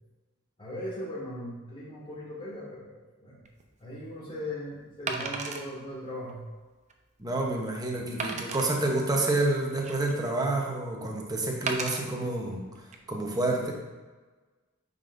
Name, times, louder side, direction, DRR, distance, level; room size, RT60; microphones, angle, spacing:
voice 1, 0.6-3.4 3.8-6.4, left 1 dB, 25° left, -6 dB, 2.1 m, -38 dB
Wood, 3.5-3.6 5.1-5.7 6.3-6.4 6.9-7.0 8.2-8.7 9.5-10.2 11.7-12.0 12.8-13.0, right 4 dB, 35° right, 0.6 m, -34 dB
voice 2, 7.2-13.7, right 2 dB, 20° right, 0 dB, 0.9 m, -29 dB
9.0 x 5.5 x 2.6 m, 1.3 s
head